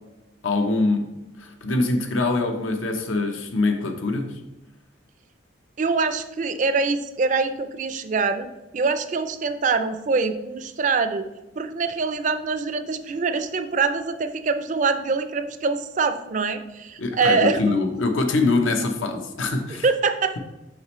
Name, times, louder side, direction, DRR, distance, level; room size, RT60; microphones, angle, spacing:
voice 1, 0.4-1.1 1.4-4.4 17.0-19.9, left 3 dB, 85° left, 5 dB, 0.8 m, -24 dB
voice 2, 5.8-8.5 8.7-11.3 11.6-17.7 19.8-20.4, right 4 dB, 40° right, 9 dB, 0.4 m, -24 dB
6.5 x 5.1 x 3.1 m, 0.98 s
head